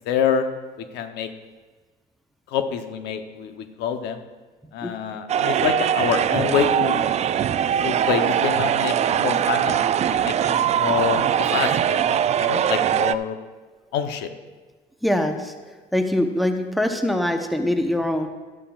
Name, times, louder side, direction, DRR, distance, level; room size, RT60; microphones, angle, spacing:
voice 1, 0.1-0.5 0.8-1.3 2.5-4.2 4.7-7.1 7.8-13.4 13.9-14.3, left 7 dB, 85° left, 7 dB, 0.8 m, -26 dB
sound 1, 5.3-13.2, right 9 dB, 40° right, 0.4 m, -21 dB
voice 2, 15.0-15.5 15.9-18.3, left 1 dB, ahead, 5 dB, 0.9 m, -23 dB
13.0 x 12.0 x 2.4 m, 1.4 s
cardioid pair, 110°, 17 cm